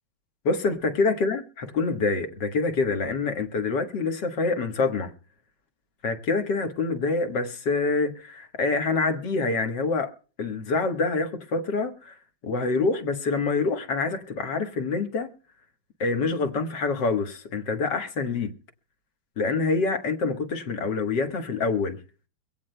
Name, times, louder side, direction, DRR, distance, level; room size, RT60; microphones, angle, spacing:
voice 1, 0.5-5.1 6.0-10.1 10.4-12.2 12.4-15.3 16.0-18.5 19.4-22.0, left 4 dB, 55° left, 1.9 m, -26 dB
24.0 x 17.0 x 2.2 m
omnidirectional pair, 2.4 m